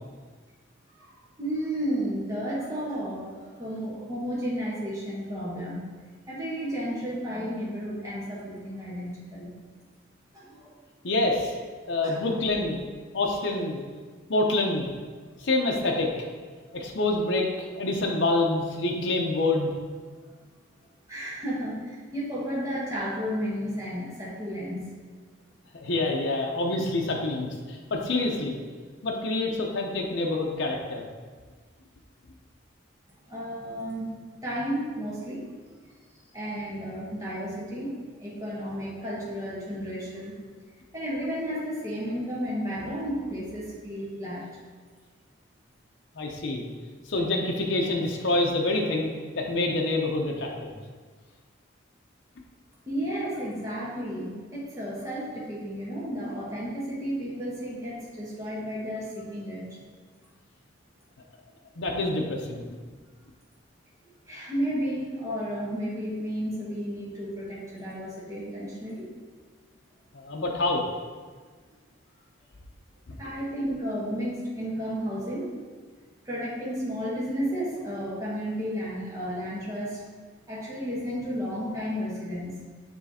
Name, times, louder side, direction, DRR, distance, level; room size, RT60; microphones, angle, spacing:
voice 1, 0.9-5.8 6.3-9.5 10.3-10.8 12.0-12.2 15.3-15.4 20.3-20.4 21.1-24.9 33.3-34.1 34.4-35.5 36.3-40.4 40.9-44.6 52.9-59.7 64.3-69.1 73.2-75.5 76.2-80.0 80.5-82.6, equal, 15° right, -7 dB, 1.3 m, -32 dB
voice 2, 11.0-11.5 11.9-12.8 13.1-13.8 14.3-14.9 15.4-16.1 16.7-17.5 17.7-19.7 25.8-28.6 29.0-31.0 46.2-46.6 47.1-49.1 49.4-50.8 61.8-62.6 70.1-70.8 73.1-73.2, left 2 dB, 65° left, 0 dB, 0.7 m, -26 dB
7.2 x 3.3 x 4.2 m, 1.5 s
head